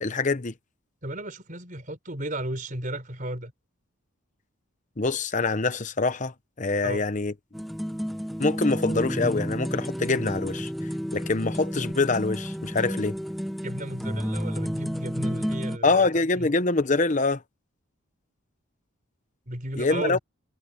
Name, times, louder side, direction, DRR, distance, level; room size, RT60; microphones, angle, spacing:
voice 1, 0.0-0.5 5.0-7.3 8.4-10.7 11.1-13.2 15.8-17.4 19.8-20.2, left 3 dB, 35° left, 0.9 m, -25 dB
voice 2, 1.0-3.5 6.8-7.0 13.6-16.1 16.3-16.5 19.5-20.2, right 1 dB, 40° right, 4.2 m, -34 dB
sound 1, 7.5-15.8, equal, ahead, 0.8 m, -31 dB
head